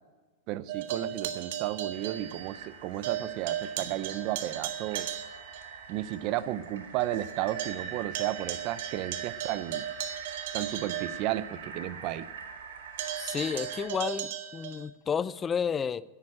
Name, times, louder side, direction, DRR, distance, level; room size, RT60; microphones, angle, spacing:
voice 1, 0.5-5.1 5.9-9.9 10.5-12.3, right 14 dB, 40° right, 0.6 m, -33 dB
sound 1, 0.7-2.8 3.0-5.7 6.1-6.2 6.6-6.7 7.0-11.8 13.0-14.9, right 10 dB, 65° right, 1.7 m, -37 dB
sound 2, 1.9-13.9, right 6 dB, 85° right, 3.8 m, -44 dB
voice 2, 13.2-16.0, left 7 dB, 20° left, 0.4 m, -31 dB
11.0 x 8.8 x 8.7 m
supercardioid pair, 155°, 0 cm